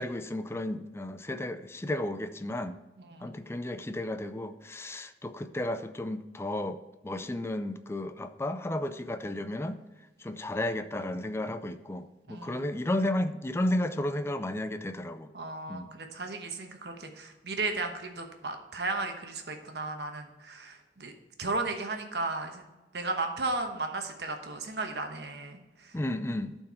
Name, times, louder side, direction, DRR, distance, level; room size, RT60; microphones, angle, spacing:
voice 1, 0.0-2.8 3.2-9.8 10.2-15.3 15.7-15.9 25.9-26.6, left 1 dB, 15° left, 10 dB, 0.4 m, -33 dB
voice 2, 3.0-3.4 12.3-12.6 15.3-21.1 21.4-22.7 22.9-26.0, right 3 dB, 70° right, 5 dB, 1.1 m, -35 dB
12.0 x 4.5 x 4.3 m, 1.1 s
head